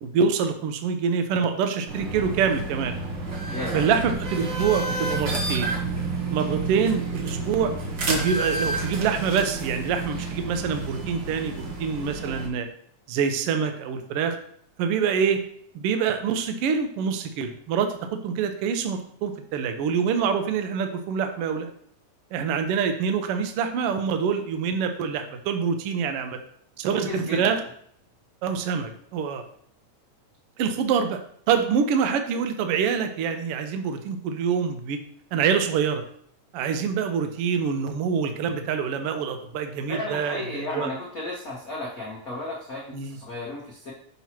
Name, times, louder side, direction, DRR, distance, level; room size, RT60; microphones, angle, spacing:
voice 1, 0.0-2.9 3.7-5.7 6.3-7.7 8.1-12.7 13.1-14.4 14.8-15.4 15.7-21.7 22.3-26.4 26.8-27.6 28.4-29.4 30.6-31.2 31.5-35.0 35.3-36.0 36.5-40.9 42.9-43.2, right 6 dB, 75° right, 6 dB, 1.3 m, -25 dB
sound 1, 1.9-12.5, right 3 dB, 55° right, 1.4 m, -30 dB
voice 2, 3.5-3.9 27.1-27.6 39.9-43.9, left 1 dB, 75° left, -4 dB, 0.8 m, -34 dB
7.0 x 3.0 x 5.8 m, 0.64 s
omnidirectional pair, 3.4 m